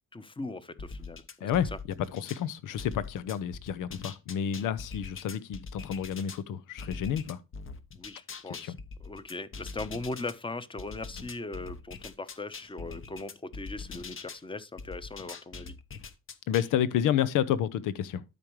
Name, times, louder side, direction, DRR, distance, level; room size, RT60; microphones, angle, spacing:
voice 1, 0.1-1.5 8.0-8.7 9.0-15.8, left 3 dB, 15° left, 0.9 m, -39 dB
sound 1, 0.8-2.4 2.8-6.4 6.8-10.3 10.8-14.4 14.8-16.7, left 4 dB, 40° left, 1.1 m, -43 dB
voice 2, 1.4-1.7 2.1-7.4 8.5-8.8 16.5-18.2, left 9 dB, 90° left, 0.8 m, -30 dB
12.5 x 5.2 x 3.1 m
cardioid pair, 95°, 31 cm